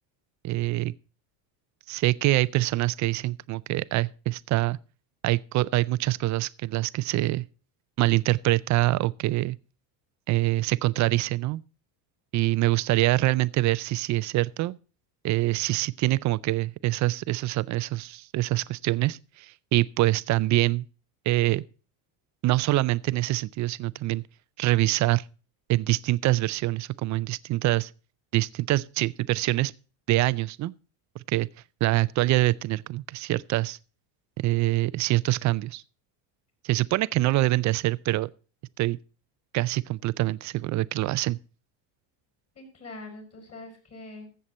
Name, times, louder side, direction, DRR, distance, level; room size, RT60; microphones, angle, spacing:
voice 1, 0.4-0.9 1.9-4.8 5.2-7.4 8.0-9.6 10.3-11.6 12.3-14.8 15.2-20.9 21.3-21.6 22.4-24.2 24.6-25.2 25.7-27.9 28.3-29.7 30.1-30.7 31.2-31.5 31.8-33.8 34.4-35.8 36.6-38.3 38.8-39.0 39.5-41.4, right 17 dB, 40° right, 0.4 m, -25 dB
voice 2, 42.5-44.5, left 2 dB, 30° left, 5.9 m, -44 dB
14.0 x 7.7 x 4.2 m
cardioid pair, 130°, 48 cm